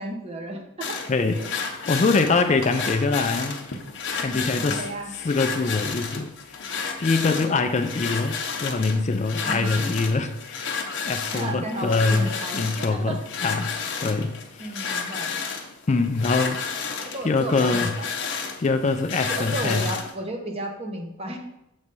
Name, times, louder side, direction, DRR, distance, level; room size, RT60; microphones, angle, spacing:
voice 1, 0.0-1.0 1.4-1.5 4.3-5.1 7.2-7.5 9.4-9.9 11.3-13.2 14.6-15.4 17.0-18.1 19.3-21.4, right 1 dB, 25° right, 2 dB, 0.9 m, -33 dB
sound 1, 0.8-20.1, left 5 dB, 55° left, 0.8 m, -32 dB
voice 2, 1.1-3.8 4.1-4.8 5.2-6.3 7.0-10.7 11.1-13.8 14.0-14.7 15.9-16.6 17.2-17.9 18.6-19.9, left 3 dB, 30° left, 8 dB, 0.4 m, -24 dB
7.0 x 3.2 x 5.3 m, 0.85 s
head